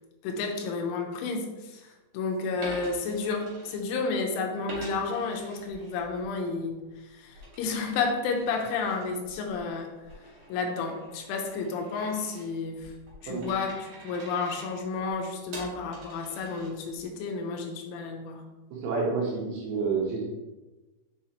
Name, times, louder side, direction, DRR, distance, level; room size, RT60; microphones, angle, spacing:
voice 1, 0.2-6.8 7.1-9.9 10.5-12.9 13.2-18.4, left 4 dB, 85° left, 2 dB, 3.2 m, -31 dB
Coin (dropping), 2.6-4.2 4.7-6.3 6.6-17.1, right 1 dB, 50° right, 2.6 m, -46 dB
voice 2, 18.8-20.2, right 4 dB, 70° right, -3 dB, 3.2 m, -29 dB
7.0 x 5.7 x 3.0 m, 1.1 s
omnidirectional pair, 5.6 m